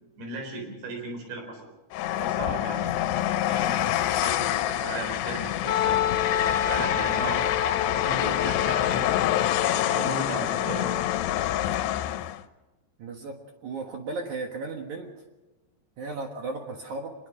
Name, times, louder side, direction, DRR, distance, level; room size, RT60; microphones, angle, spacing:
voice 1, 0.2-1.6 2.2-2.9 3.5-6.0 6.7-7.4 7.8-9.4 9.9-10.9, right 2 dB, 85° right, 3 dB, 6.3 m, -36 dB
Train, 1.9-12.4, left 13 dB, 80° left, 2.8 m, -27 dB
Wind instrument woodwind instrument, 5.7-11.3, left 9 dB, 60° left, 2.8 m, -29 dB
voice 2, 13.0-13.4 13.6-15.1 16.0-17.1, right 3 dB, 60° right, 3 dB, 2.3 m, -35 dB
24.5 x 21.5 x 5.0 m, 1.1 s
omnidirectional pair, 4.9 m